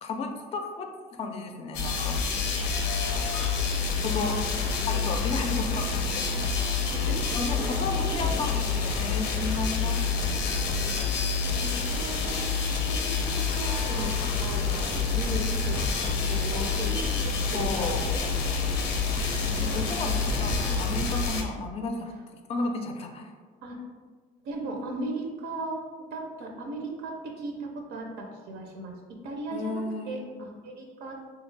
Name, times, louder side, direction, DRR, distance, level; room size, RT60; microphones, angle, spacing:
voice 1, 0.0-2.2 4.0-4.4 4.7-6.7 7.3-10.6 17.5-18.1 19.6-22.1 22.5-23.3 29.5-30.2, left 3 dB, 35° left, 5 dB, 0.3 m, -33 dB
sound 1, 1.7-21.4, left 5 dB, 90° left, 0.5 m, -28 dB
voice 2, 4.0-4.9 5.5-5.9 6.8-7.3 7.7-8.5 10.2-18.0 19.4-20.2 22.5-22.7 23.6-23.8 24.4-25.8 26.1-28.9 29.2-31.2, right 2 dB, 85° right, 1 dB, 0.5 m, -38 dB
sound 2, 13.8-21.4, right 2 dB, 35° right, 0.3 m, -38 dB
3.3 x 2.3 x 3.2 m, 1.5 s
cardioid pair, 110°, 17 cm